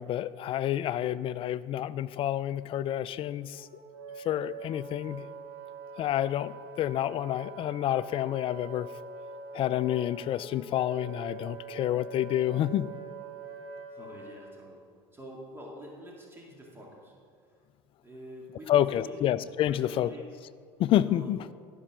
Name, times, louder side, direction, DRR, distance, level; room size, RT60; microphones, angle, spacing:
voice 1, 0.0-3.7 4.2-5.3 6.0-8.9 9.5-12.9 18.7-20.1 20.8-21.4, left 12 dB, 45° left, 17 dB, 0.4 m, -29 dB
Wind instrument woodwind instrument, 3.5-14.4, right 3 dB, 80° right, 1.9 m, -44 dB
voice 2, 13.9-17.1 18.0-19.2 19.7-20.3 21.0-21.3, right 1 dB, 20° right, -2 dB, 2.1 m, -46 dB
12.5 x 5.5 x 6.1 m, 2.2 s
hypercardioid pair, 85°, 12 cm